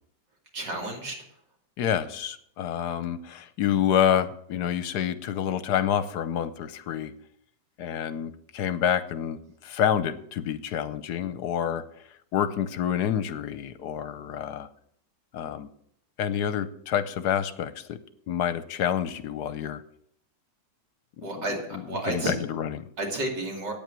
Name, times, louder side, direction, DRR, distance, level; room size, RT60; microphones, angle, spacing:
voice 1, 0.5-1.1 21.2-22.3 23.0-23.7, right 2 dB, 85° right, 0 dB, 3.3 m, -31 dB
voice 2, 1.8-7.1 7.8-11.8 12.3-14.7 15.3-15.7 16.2-18.0 18.3-19.8 21.2-21.5 21.7-22.8, left 9 dB, 75° left, 13 dB, 1.3 m, -28 dB
9.0 x 8.6 x 7.5 m, 0.68 s
omnidirectional pair, 1.8 m